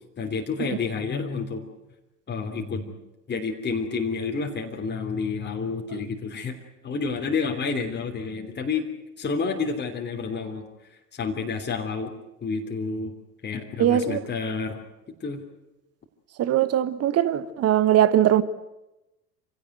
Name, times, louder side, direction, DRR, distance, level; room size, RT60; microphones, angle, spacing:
voice 1, 0.2-1.7 2.3-2.9 3.3-6.5 6.8-8.8 9.2-10.6 11.1-12.1 12.4-13.1 13.4-14.8 15.2-15.4, left 4 dB, 20° left, 3.2 m, -29 dB
voice 2, 13.8-14.2 16.4-18.4, right 11 dB, 30° right, 1.3 m, -20 dB
27.5 x 17.0 x 9.2 m
figure-of-eight pair, 75°, 48 cm